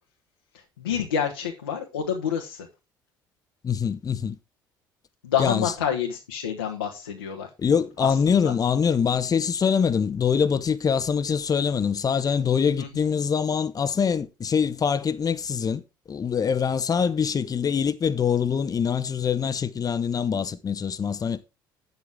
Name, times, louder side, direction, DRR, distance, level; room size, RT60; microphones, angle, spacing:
voice 1, 0.8-2.7 5.2-7.5 8.0-8.5 12.8-12.9, left 8 dB, 85° left, 1.3 m, -28 dB
voice 2, 3.6-4.4 5.4-5.7 7.6-15.8 16.1-21.5, left 7 dB, 35° left, 0.9 m, -24 dB
9.3 x 8.0 x 3.6 m
hypercardioid pair, 60°, 11 cm